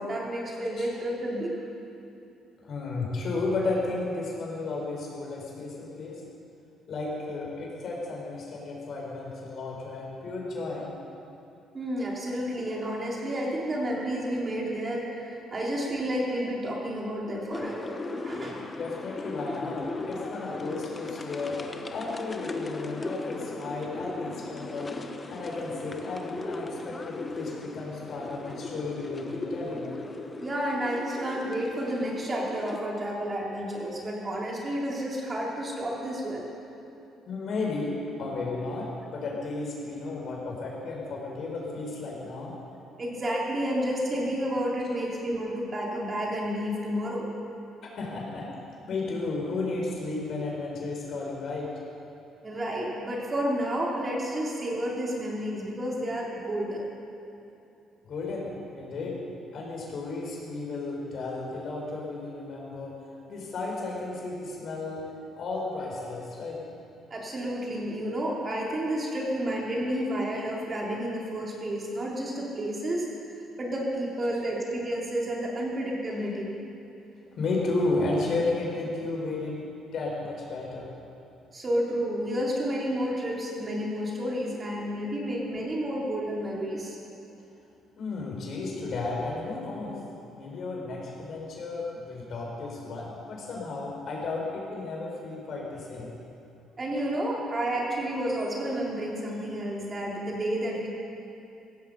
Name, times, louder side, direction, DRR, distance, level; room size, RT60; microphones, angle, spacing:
voice 1, 0.0-1.5 11.7-18.6 30.4-36.5 43.0-47.2 52.4-56.8 67.1-73.1 73.6-76.5 81.5-87.0 96.8-100.9, equal, 35° right, -3 dB, 3.7 m, -30 dB
voice 2, 2.6-6.2 6.9-10.9 18.8-21.6 21.9-25.0 25.3-29.8 37.3-42.5 47.9-48.5 48.9-51.7 58.1-58.5 58.8-59.2 59.5-62.9 63.3-65.0 65.4-66.6 77.3-79.6 79.9-80.9 88.0-90.0 90.3-96.1, left 3 dB, 55° left, -2 dB, 4.9 m, -33 dB
sound 1, 17.5-32.8, left 2 dB, 30° left, 1.2 m, -37 dB
16.5 x 15.0 x 5.5 m, 2.7 s
cardioid pair, 90°, 0 cm